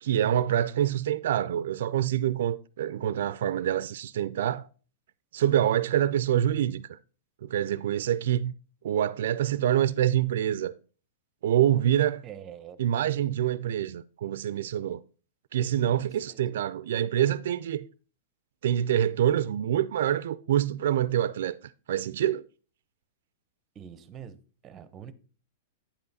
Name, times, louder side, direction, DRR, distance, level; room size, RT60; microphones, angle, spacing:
voice 1, 0.0-4.7 5.3-7.0 7.4-8.5 8.8-10.7 11.4-12.2 12.8-15.0 15.5-17.9 18.6-21.6 21.9-22.4, right 11 dB, 70° right, 0.3 m, -26 dB
voice 2, 12.2-12.8 15.9-16.4 23.7-25.1, right 9 dB, 20° right, 0.6 m, -45 dB
8.5 x 5.5 x 4.0 m
supercardioid pair, 155°, 0 cm